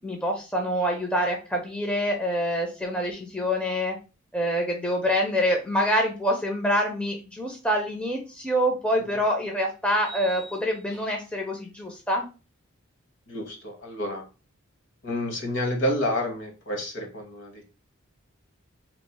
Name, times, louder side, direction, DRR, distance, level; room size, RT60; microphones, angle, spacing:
voice 1, 0.0-4.0 4.3-12.3, equal, 5° left, 1 dB, 0.5 m, -26 dB
sound 1, 8.3-8.4 10.0-11.4, right 4 dB, 75° left, 1.4 m, -44 dB
voice 2, 13.3-14.2 15.0-17.6, left 1 dB, 60° left, 2 dB, 1.0 m, -29 dB
3.0 x 2.0 x 4.0 m, 0.31 s
head